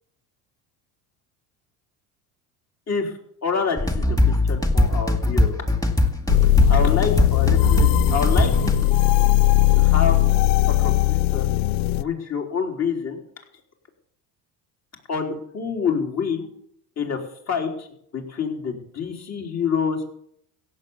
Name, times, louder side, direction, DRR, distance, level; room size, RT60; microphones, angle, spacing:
voice 1, 3.4-5.5 6.7-8.9 9.8-10.2 10.7-11.5 12.0-13.2 15.1-16.5 17.0-17.9 18.1-20.0, left 6 dB, 40° left, 2 dB, 4.0 m, -27 dB
sound 1, 3.8-8.8, left 1 dB, 10° left, 2.1 m, -20 dB
sound 2, 6.3-12.0, left 16 dB, 55° left, 0.6 m, -19 dB
16.0 x 8.2 x 7.3 m, 0.68 s
supercardioid pair, 95°, 41 cm